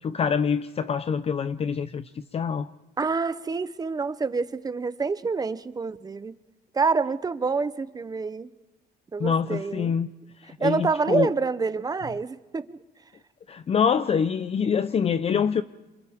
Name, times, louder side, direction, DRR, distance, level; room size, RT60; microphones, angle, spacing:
voice 1, 0.0-2.7 9.2-10.1 10.4-11.3 13.5-15.6, left 7 dB, 35° left, 11 dB, 0.6 m, -25 dB
voice 2, 3.0-6.3 6.7-8.5 9.1-9.9 10.6-12.8, right 4 dB, 20° right, 14 dB, 0.7 m, -27 dB
28.5 x 27.5 x 3.6 m, 1.2 s
cardioid pair, 130°, 17 cm